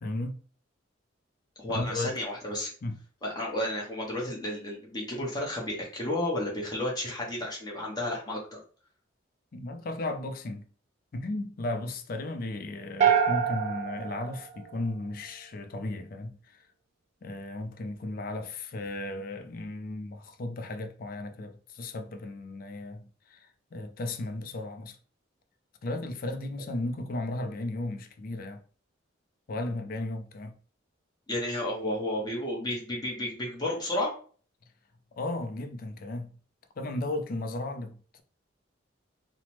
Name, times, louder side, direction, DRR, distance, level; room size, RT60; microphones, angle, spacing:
voice 1, 0.0-0.4 1.7-2.1 2.8-3.0 9.5-10.7 11.1-16.6 17.2-25.0 25.8-28.6 29.5-30.5 35.1-36.3 36.8-38.2, left 2 dB, 45° left, 0.4 m, -35 dB
voice 2, 1.6-2.7 3.2-8.6 31.3-34.1, left 1 dB, 20° left, 0.8 m, -32 dB
sound 1, 13.0-15.3, right 8 dB, 35° right, 0.3 m, -27 dB
3.1 x 2.0 x 2.9 m
head